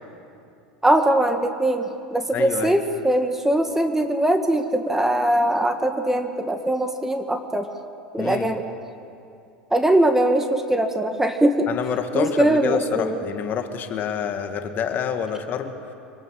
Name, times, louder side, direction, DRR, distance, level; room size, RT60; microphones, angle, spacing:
voice 1, 0.8-7.7 8.1-8.7 9.7-11.7 12.1-13.2, right 1 dB, 10° right, 6 dB, 1.7 m, -21 dB
voice 2, 2.3-2.8 8.2-8.5 11.7-15.7, left 8 dB, 40° left, 7 dB, 1.9 m, -27 dB
25.5 x 19.0 x 7.6 m, 2.6 s
hypercardioid pair, 85°, 5 cm